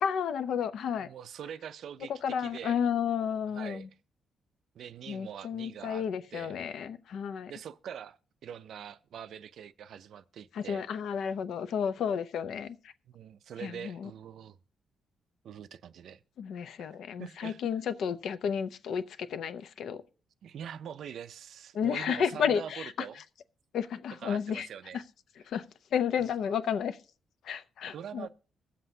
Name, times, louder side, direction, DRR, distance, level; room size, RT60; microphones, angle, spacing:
voice 1, 0.0-1.1 2.2-3.9 5.1-7.5 10.5-12.8 13.6-14.1 16.4-20.0 21.7-22.9 23.7-24.7 24.9-25.0 25.5-25.6 25.9-27.0 27.4-28.3, left 7 dB, 65° left, 0.6 m, -32 dB
voice 2, 1.0-2.8 3.5-3.9 4.7-6.0 6.3-6.6 7.5-10.8 13.1-14.6 15.4-16.2 17.2-17.6 20.4-23.2 24.2-25.0 27.9-28.3, right 8 dB, 65° right, 0.4 m, -44 dB
22.0 x 7.7 x 2.7 m
cardioid pair, 160°, 0 cm